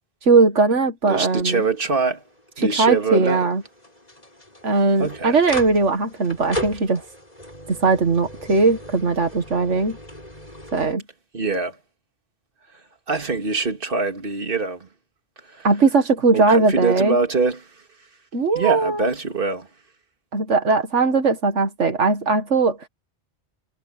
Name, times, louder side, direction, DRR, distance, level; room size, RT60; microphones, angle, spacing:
voice 1, 0.3-1.6 2.6-3.6 4.6-7.0 7.7-10.0 10.7-11.0 15.6-17.2 18.3-19.0 20.3-22.8, right 3 dB, 85° right, 2.1 m, -19 dB
voice 2, 1.0-2.2 2.6-3.5 5.0-5.4 11.3-11.8 13.1-14.9 15.5-15.7 16.3-17.7 18.5-19.7, right 4 dB, 50° right, 2.5 m, -23 dB
sound 1, 1.2-10.9, equal, 35° left, 6.9 m, -38 dB
omnidirectional pair, 1.2 m